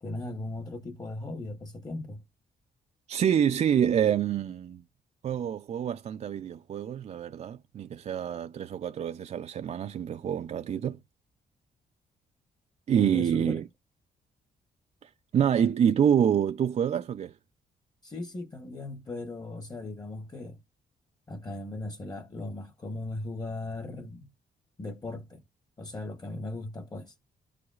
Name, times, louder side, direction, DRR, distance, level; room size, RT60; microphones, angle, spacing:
voice 1, 0.0-2.2 13.0-13.6 18.0-20.6 21.3-24.3 24.8-25.4 25.8-27.1, left 2 dB, 25° left, 1.0 m, -38 dB
voice 2, 3.1-4.8 5.2-11.0 12.9-13.6 15.0-17.3, right 9 dB, 45° right, 0.4 m, -27 dB
13.5 x 4.9 x 2.4 m
cardioid pair, 145°, 16 cm